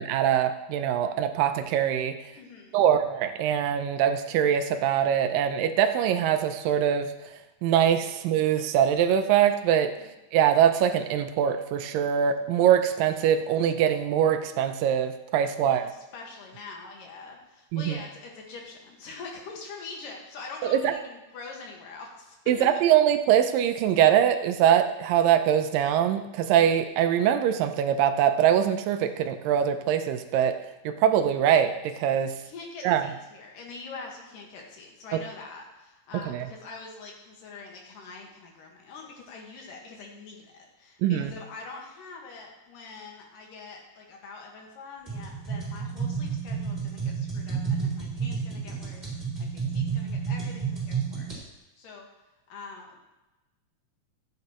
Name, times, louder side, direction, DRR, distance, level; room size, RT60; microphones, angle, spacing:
voice 1, 0.0-2.2 2.7-7.1 7.6-9.9 10.3-15.8 17.7-18.0 20.6-20.9 22.5-30.6 30.9-32.3 32.8-33.0 35.1-35.2 36.3-36.5 41.0-41.3, right 9 dB, 80° right, 8 dB, 2.3 m, -23 dB
voice 2, 2.4-2.8 10.0-10.1 15.6-22.4 32.4-52.1 52.5-53.0, left 4 dB, 70° left, 0 dB, 3.1 m, -44 dB
sound 1, 45.1-51.4, right 6 dB, 10° right, 3.6 m, -31 dB
15.0 x 8.4 x 3.0 m, 1.0 s
omnidirectional pair, 4.0 m